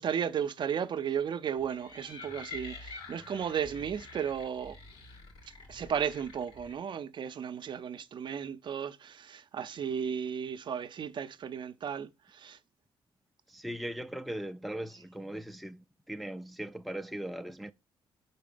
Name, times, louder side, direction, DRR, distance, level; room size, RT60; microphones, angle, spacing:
voice 1, 0.0-4.8 5.7-12.6, right 8 dB, 55° right, 0.6 m, -34 dB
sound 1, 1.6-6.7, left 3 dB, 70° left, 2.4 m, -47 dB
voice 2, 13.5-17.7, right 1 dB, ahead, 0.4 m, -39 dB
4.7 x 4.2 x 5.2 m
cardioid pair, 70°, 10 cm